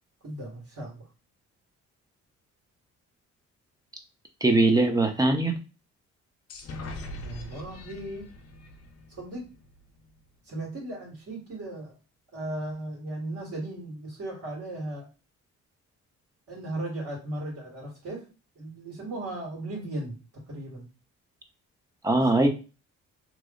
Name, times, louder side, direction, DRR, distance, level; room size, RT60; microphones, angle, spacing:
voice 1, 0.2-1.1 7.2-8.3 9.1-9.5 10.5-11.9 12.3-15.1 16.5-18.3 18.5-20.2 20.5-20.8, right 1 dB, 50° right, -3 dB, 1.8 m, -36 dB
voice 2, 4.4-5.5 22.0-22.5, right 2 dB, 10° right, 5 dB, 0.7 m, -21 dB
sound 1, 6.5-10.2, left 1 dB, 55° left, 0.8 m, -42 dB
3.1 x 2.0 x 3.7 m, 0.32 s
cardioid pair, 90°, 30 cm